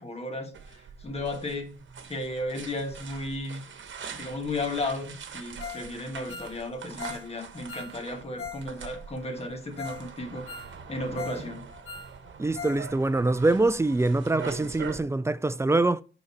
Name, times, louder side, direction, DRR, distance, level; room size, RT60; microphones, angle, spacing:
voice 1, 0.0-1.8 2.1-3.6 4.1-11.6, left 2 dB, 30° left, 1.5 m, -34 dB
sound 1, 0.5-15.0, right 6 dB, 65° right, 1.1 m, -43 dB
Ringtone, 5.6-5.9 6.1-8.7 8.9-9.0 9.5-9.6 9.8-10.0 10.3-11.5 11.7-12.8 13.1-13.2 13.6-13.7, left 6 dB, 80° left, 1.9 m, -40 dB
voice 2, 12.4-16.0, right 2 dB, 15° right, 0.3 m, -24 dB
11.0 x 4.0 x 4.2 m
wide cardioid pair, 130°, 21 cm